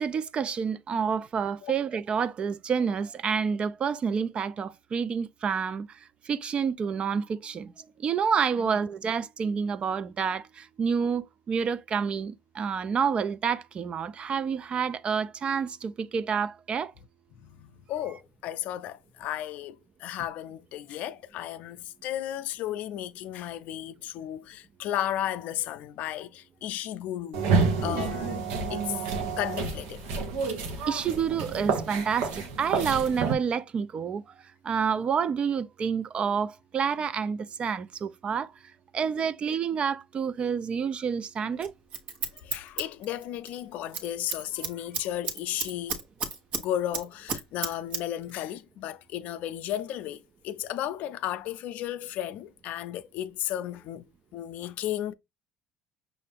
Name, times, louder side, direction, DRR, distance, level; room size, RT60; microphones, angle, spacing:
voice 1, 0.0-5.9 6.3-7.7 8.0-16.9 30.9-34.2 34.6-38.5 38.9-41.7, right 6 dB, 40° right, 0.4 m, -28 dB
voice 2, 17.4-29.0 29.4-30.0 42.4-46.0 46.6-54.0 54.3-55.1, left 12 dB, 65° left, 0.4 m, -34 dB
sound 1, 27.3-33.3, right 4 dB, 80° right, 1.0 m, -29 dB
Scissors, 41.6-43.6 43.8-44.1 44.3-46.6 46.9-48.0 48.3-48.4, right 5 dB, 55° right, 1.1 m, -32 dB
5.7 x 2.5 x 3.4 m
supercardioid pair, 85°, 3 cm